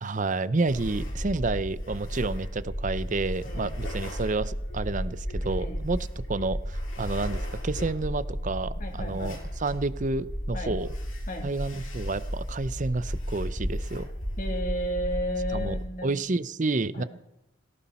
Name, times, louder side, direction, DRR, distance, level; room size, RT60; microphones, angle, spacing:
voice 1, 0.0-10.9 11.4-14.1 15.5-17.0, right 3 dB, 40° right, 16 dB, 0.7 m, -30 dB
sound 1, 0.7-15.8, equal, 85° left, 6.6 m, -33 dB
voice 2, 3.4-3.7 5.6-5.8 8.8-9.4 10.5-10.7 11.3-11.5 14.4-16.1 16.9-17.1, equal, 45° left, 2 dB, 3.2 m, -33 dB
18.5 x 17.5 x 4.3 m, 0.90 s
head